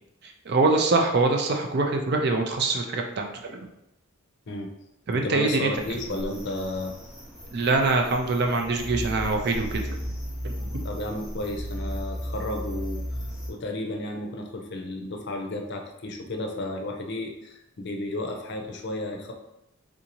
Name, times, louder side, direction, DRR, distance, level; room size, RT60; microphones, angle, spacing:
voice 1, 0.2-3.6 5.1-5.7 7.5-10.0 10.4-10.8, right 3 dB, 50° right, 3 dB, 0.4 m, -24 dB
voice 2, 5.1-6.9 7.4-7.5 10.8-13.0 13.5-19.3, left 1 dB, 55° left, 3 dB, 0.5 m, -33 dB
sound 1, 5.7-13.5, equal, 5° right, 0.6 m, -35 dB
3.6 x 2.6 x 2.9 m, 0.88 s
head